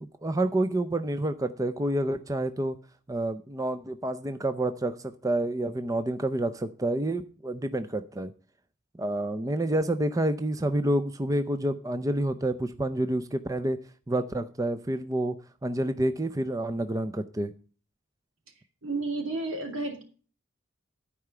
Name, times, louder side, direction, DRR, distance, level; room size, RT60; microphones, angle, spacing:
voice 1, 0.0-2.8 3.1-8.3 9.0-13.8 14.1-15.4 15.6-17.5, right 1 dB, 15° right, 10 dB, 0.5 m, -28 dB
voice 2, 18.8-20.0, right 3 dB, 80° right, 3 dB, 2.8 m, -31 dB
13.0 x 4.9 x 6.7 m, 0.39 s
head